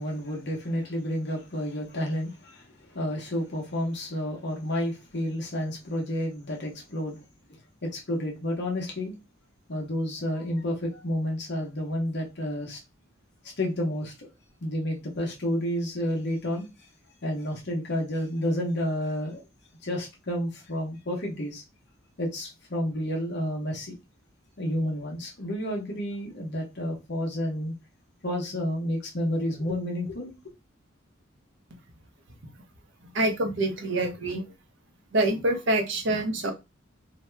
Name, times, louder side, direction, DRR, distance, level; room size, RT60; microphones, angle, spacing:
voice 1, 0.0-7.2 7.5-9.1 9.7-12.8 13.4-14.3 14.6-16.9 17.2-19.4 19.8-21.6 22.2-23.9 24.6-27.7 28.2-30.3, equal, 60° left, 0.9 m, -30 dB
voice 2, 33.1-34.4 35.1-36.5, right 1 dB, 65° right, 0.8 m, -26 dB
2.8 x 2.2 x 3.2 m
head